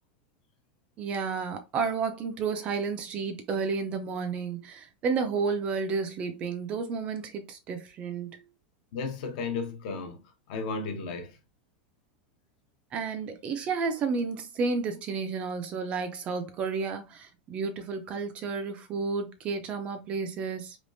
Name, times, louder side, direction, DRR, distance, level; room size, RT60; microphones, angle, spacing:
voice 1, 1.0-8.4 12.9-20.8, right 5 dB, 25° right, 0.4 m, -31 dB
voice 2, 8.9-10.2 10.5-11.4, left 4 dB, 45° left, 0.8 m, -34 dB
3.5 x 3.0 x 2.5 m
supercardioid pair, 175°, 5 cm